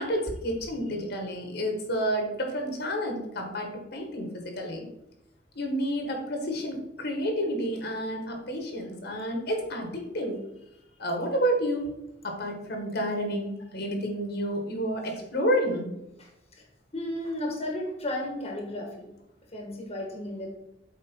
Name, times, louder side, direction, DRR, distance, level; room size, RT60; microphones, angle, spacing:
voice 1, 0.0-4.9 5.5-10.4 11.0-11.9 12.2-15.9, equal, 60° left, 3 dB, 1.5 m, -30 dB
voice 2, 16.9-19.1 19.5-20.5, left 1 dB, 35° left, 1 dB, 1.4 m, -33 dB
8.0 x 4.6 x 4.5 m, 0.86 s
head